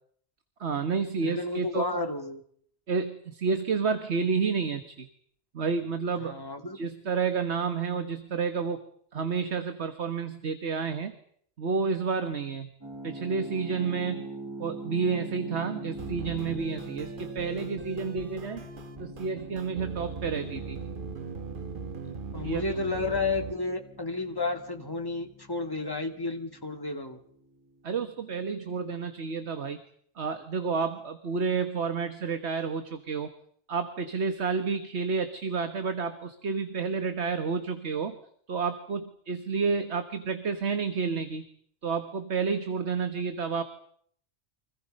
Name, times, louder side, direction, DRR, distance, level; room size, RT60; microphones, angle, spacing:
voice 1, 0.6-2.0 2.9-5.1 5.5-6.4 6.7-8.8 9.1-11.1 11.6-12.7 13.0-14.3 14.6-18.7 19.0-20.8 22.4-22.6 27.8-29.8 30.2-33.3 33.7-38.2 38.5-41.4 41.8-43.6, right 5 dB, 75° right, 9 dB, 1.8 m, -30 dB
voice 2, 1.2-2.4 6.2-6.8 22.3-27.2, left 3 dB, 20° left, 4 dB, 2.4 m, -32 dB
sound 1, 12.8-27.6, right 1 dB, 15° right, 4.5 m, -43 dB
sound 2, 16.0-23.6, right 5 dB, 50° right, 1.3 m, -40 dB
29.5 x 25.5 x 5.4 m, 0.64 s
omnidirectional pair, 1.1 m